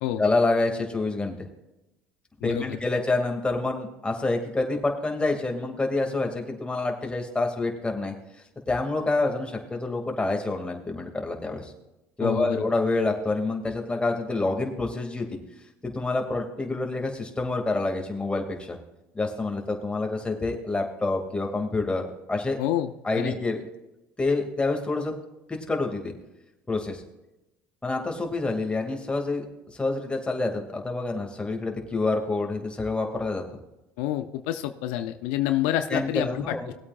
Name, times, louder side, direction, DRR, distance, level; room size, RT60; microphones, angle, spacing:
voice 1, 0.2-1.4 2.4-8.1 8.7-11.7 12.2-15.3 15.8-18.8 19.1-22.0 22.3-22.6 23.0-23.6 24.2-25.1 25.5-26.1 26.7-27.0 27.8-33.4 35.9-36.7, left 3 dB, 15° left, 2 dB, 2.4 m, -27 dB
voice 2, 12.2-12.6 22.6-23.3 34.0-36.7, left 12 dB, 80° left, 8 dB, 0.7 m, -28 dB
19.0 x 8.4 x 2.5 m, 0.95 s
supercardioid pair, 80°, 7 cm